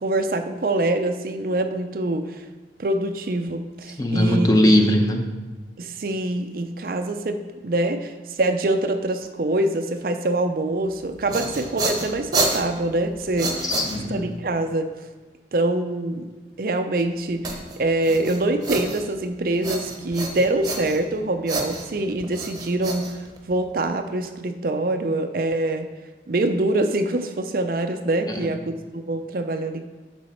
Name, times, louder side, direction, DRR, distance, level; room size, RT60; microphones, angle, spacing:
voice 1, 0.0-2.4 2.8-4.5 5.8-13.6 14.1-15.0 15.5-16.3 16.6-25.9 26.3-29.8, right 2 dB, 50° right, 7 dB, 0.5 m, -25 dB
voice 2, 4.0-5.4 13.6-14.2 28.3-28.6, left 1 dB, 20° left, 3 dB, 0.8 m, -20 dB
sound 1, 11.0-14.4 17.4-19.3 19.6-21.1 21.5-23.7, right 2 dB, 20° right, 0.9 m, -29 dB
10.5 x 6.2 x 4.4 m, 1.3 s
head